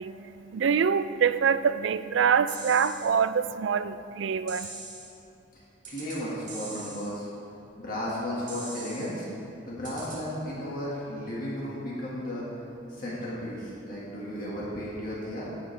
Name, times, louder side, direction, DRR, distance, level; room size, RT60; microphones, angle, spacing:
voice 1, 0.0-4.8, right 6 dB, 70° right, 13 dB, 0.3 m, -25 dB
sound 1, 2.5-3.1 4.5-5.1 5.8-6.2 6.5-7.1 8.5-9.1 9.8-10.2, right 3 dB, 40° right, 2.3 m, -41 dB
voice 2, 5.5-7.3 7.8-9.3 9.6-12.4 12.9-15.5, equal, 45° left, -7 dB, 1.8 m, -34 dB
16.5 x 7.9 x 3.3 m, 2.9 s
head